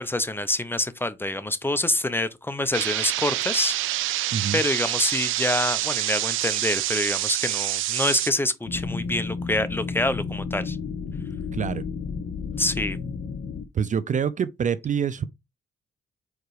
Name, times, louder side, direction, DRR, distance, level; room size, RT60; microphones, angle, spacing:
voice 1, 0.0-10.8 12.6-13.0, left 2 dB, 10° left, 0.9 m, -26 dB
sound 1, 2.7-8.3, right 15 dB, 90° right, 0.5 m, -27 dB
sound 2, 8.7-13.6, left 4 dB, 60° left, 1.1 m, -32 dB
voice 2, 11.5-11.8 13.7-15.3, right 7 dB, 40° right, 0.5 m, -26 dB
4.9 x 4.5 x 4.9 m
cardioid pair, 90°, 20 cm